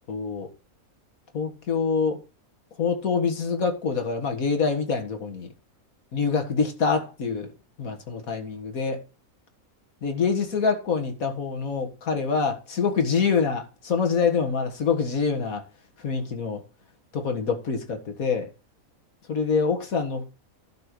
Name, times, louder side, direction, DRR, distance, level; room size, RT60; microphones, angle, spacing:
voice 1, 0.1-0.5 1.3-2.2 2.8-5.5 6.1-7.5 7.8-9.0 10.0-15.6 16.0-16.6 17.1-18.5 19.3-20.2, left 5 dB, 75° left, 2.1 m, -25 dB
11.5 x 4.4 x 6.6 m
omnidirectional pair, 1.5 m